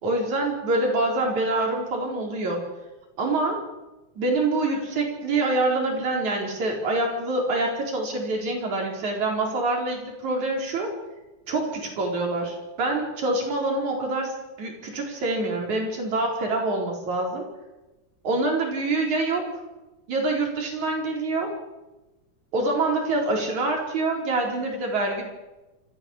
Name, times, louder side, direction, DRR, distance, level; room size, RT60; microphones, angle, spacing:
voice 1, 0.0-2.6 3.2-3.6 4.2-10.9 11.5-14.3 14.6-17.4 18.2-19.5 20.1-21.5 22.5-25.2, right 2 dB, 75° right, 0 dB, 5.8 m, -25 dB
26.0 x 14.5 x 7.3 m, 1.1 s
omnidirectional pair, 3.4 m